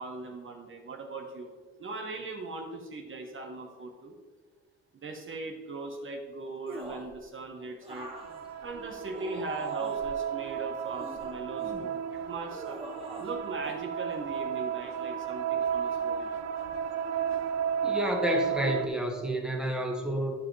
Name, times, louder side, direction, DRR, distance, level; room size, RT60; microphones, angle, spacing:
voice 1, 0.0-1.5 1.8-4.1 4.9-8.1 8.6-12.8 13.2-16.4, right 3 dB, 40° right, 2 dB, 1.1 m, -39 dB
sound 1, 6.7-7.2 7.8-10.1 10.8-11.9 12.5-13.4 13.6-13.8, right 1 dB, 20° right, 1.7 m, -44 dB
sound 2, 8.0-18.9, right 8 dB, 60° right, 0.6 m, -33 dB
voice 2, 17.8-20.3, equal, 5° right, 0 dB, 1.7 m, -30 dB
12.0 x 5.0 x 3.3 m, 1.5 s
cardioid pair, 90°, 30 cm